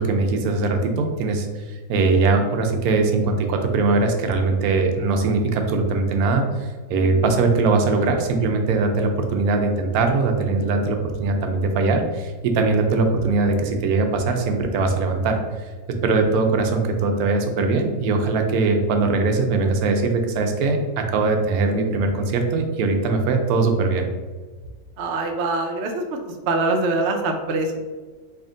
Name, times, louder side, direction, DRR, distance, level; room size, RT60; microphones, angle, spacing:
voice 1, 0.0-15.4 16.0-24.1, right 3 dB, 85° right, 4 dB, 1.1 m, -21 dB
voice 2, 25.0-26.2 26.5-27.8, right 3 dB, 60° right, 3 dB, 0.7 m, -23 dB
3.4 x 2.8 x 3.7 m, 1.4 s
omnidirectional pair, 1.5 m